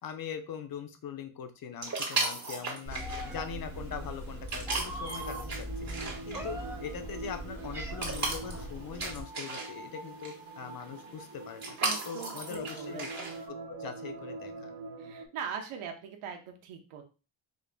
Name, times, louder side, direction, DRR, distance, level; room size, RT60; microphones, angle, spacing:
voice 1, 0.0-5.7 6.3-11.8 12.1-14.7, left 7 dB, 45° left, 7 dB, 0.7 m, -42 dB
sound 1, 1.8-13.4, right 3 dB, 35° right, 1.6 m, -38 dB
Meow, 2.9-9.2, right 1 dB, 5° right, 0.9 m, -40 dB
sound 2, 5.1-15.3, right 2 dB, 60° right, 0.8 m, -44 dB
voice 2, 11.8-13.4 15.0-17.0, right 7 dB, 85° right, 4 dB, 0.9 m, -41 dB
5.0 x 2.5 x 2.2 m, 0.34 s
cardioid pair, 95°, 49 cm